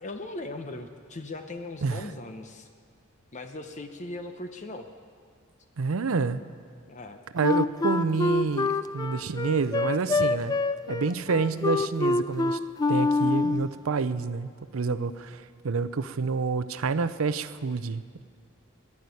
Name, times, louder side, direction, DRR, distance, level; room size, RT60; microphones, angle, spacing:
voice 1, 0.0-2.7 3.3-4.9 6.9-7.2, left 2 dB, 35° left, 6 dB, 0.7 m, -39 dB
voice 2, 5.8-6.4 7.3-10.5 10.9-12.6 12.9-18.2, right 4 dB, 90° right, 13 dB, 0.6 m, -28 dB
Wind instrument woodwind instrument, 7.4-13.7, left 3 dB, 20° left, 0.3 m, -25 dB
11.0 x 10.5 x 9.7 m, 2.1 s
head